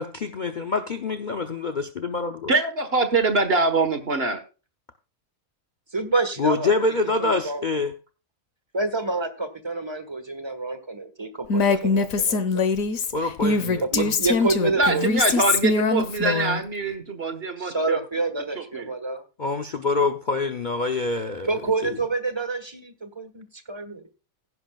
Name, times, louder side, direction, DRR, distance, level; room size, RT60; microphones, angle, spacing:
voice 1, 0.0-2.5 6.4-7.9 13.1-14.2 19.4-22.0, left 3 dB, 45° left, 6 dB, 0.7 m, -26 dB
voice 2, 2.5-4.4 14.7-18.0 18.5-18.9, right 3 dB, 45° right, 8 dB, 1.6 m, -24 dB
voice 3, 5.9-6.9 7.2-7.6 8.7-12.6 13.8-15.1 17.6-19.2 21.5-24.0, right 3 dB, 20° right, 9 dB, 1.5 m, -28 dB
Female speech woman speaking, 11.5-16.6, left 4 dB, 75° left, 1.5 m, -22 dB
16.0 x 10.5 x 2.4 m, 0.32 s
omnidirectional pair, 1.5 m